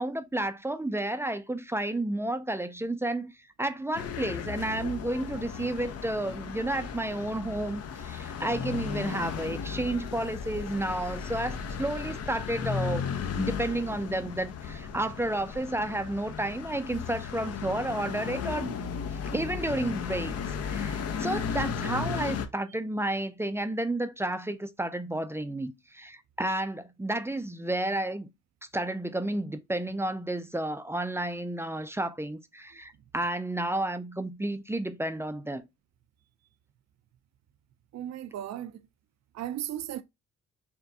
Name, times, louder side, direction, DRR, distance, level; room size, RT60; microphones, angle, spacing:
voice 1, 0.0-3.3 3.6-13.0 13.4-18.8 19.1-20.4 20.6-28.3 28.7-35.6, right 1 dB, 10° right, 0.5 m, -31 dB
sound 1, 3.9-22.5, left 6 dB, 55° left, 0.7 m, -35 dB
voice 2, 37.9-38.8 39.3-40.0, right 11 dB, 60° right, 0.6 m, -35 dB
6.0 x 2.2 x 2.7 m
cardioid pair, 90°, 30 cm